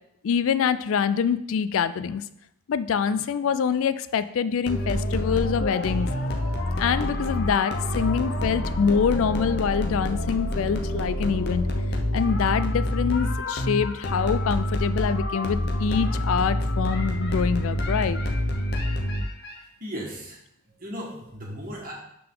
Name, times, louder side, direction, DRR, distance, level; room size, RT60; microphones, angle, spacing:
voice 1, 0.2-2.2 2.7-6.1 6.8-11.7 12.1-18.2, left 6 dB, 65° left, 14 dB, 0.3 m, -25 dB
sound 1, 4.7-19.6, left 1 dB, 45° left, 0.8 m, -27 dB
voice 2, 19.6-20.4 20.7-21.9, equal, 40° right, -2 dB, 1.7 m, -37 dB
11.5 x 3.8 x 3.8 m, 0.77 s
head